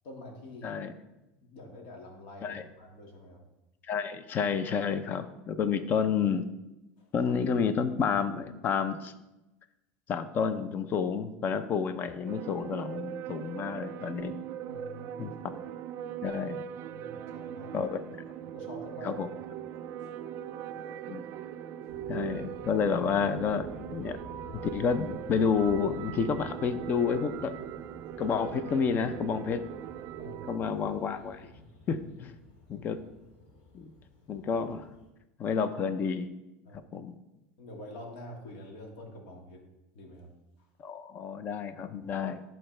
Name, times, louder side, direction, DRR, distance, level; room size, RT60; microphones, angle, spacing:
voice 1, 0.0-0.8 1.4-3.4 7.0-7.1 14.7-15.4 16.9-17.8 18.4-19.5 30.2-31.0 36.6-36.8 37.6-39.6 39.9-40.3, left 1 dB, 70° left, 1 dB, 2.0 m, -47 dB
voice 2, 0.6-0.9 2.4-2.6 3.9-6.5 7.1-9.1 10.1-14.3 15.2-15.3 16.2-16.6 17.7-18.2 19.0-19.3 20.8-21.2 22.1-24.2 24.5-27.5 28.2-29.6 30.5-31.5 31.9-32.3 32.7-33.0 33.7-33.9 34.3-34.9 35.4-36.3 36.9-37.1 40.8-42.4, left 6 dB, 35° left, 11 dB, 0.6 m, -30 dB
sound 1, 12.3-30.6, right 10 dB, 50° right, 0.4 m, -40 dB
sound 2, 21.9-35.1, left 2 dB, 85° left, 2.9 m, -51 dB
11.0 x 4.4 x 3.3 m, 0.98 s
supercardioid pair, 120°, 5 cm